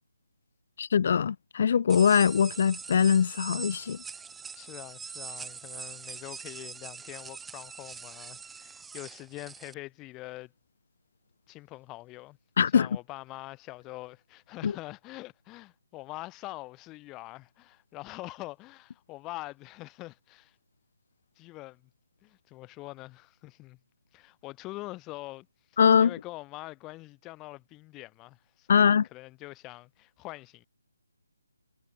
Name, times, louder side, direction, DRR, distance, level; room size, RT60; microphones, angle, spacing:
voice 1, 0.8-4.0 12.6-12.9 14.6-14.7 25.8-26.1 28.7-29.1, left 7 dB, 40° left, 0.6 m, -22 dB
sound 1, 1.9-9.7, right 5 dB, 5° right, 1.8 m, -43 dB
voice 2, 4.5-10.5 11.5-20.5 21.4-21.9 22.2-23.8 24.1-25.5 26.0-30.6, left 20 dB, 15° left, 2.9 m, -44 dB
figure-of-eight pair, 145°, 0 cm